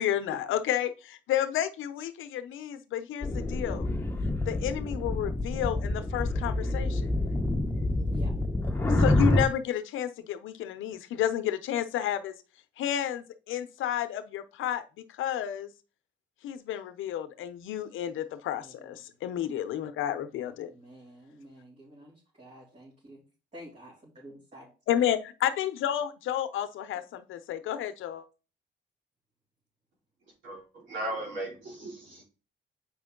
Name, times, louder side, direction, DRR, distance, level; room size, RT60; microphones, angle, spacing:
voice 1, 0.0-3.9 4.5-7.2 8.9-12.3 12.8-14.8 15.1-15.7 16.4-20.7 24.9-28.3, left 10 dB, 80° left, 11 dB, 0.8 m, -31 dB
sound 1, 3.2-9.4, left 1 dB, 10° left, 1.1 m, -27 dB
voice 2, 18.6-19.1 20.4-23.2 23.5-24.7, equal, 35° right, -6 dB, 3.3 m, -49 dB
voice 3, 30.4-32.2, right 1 dB, 75° right, -4 dB, 4.1 m, -37 dB
7.4 x 5.2 x 3.8 m, 0.34 s
cardioid pair, 90°, 20 cm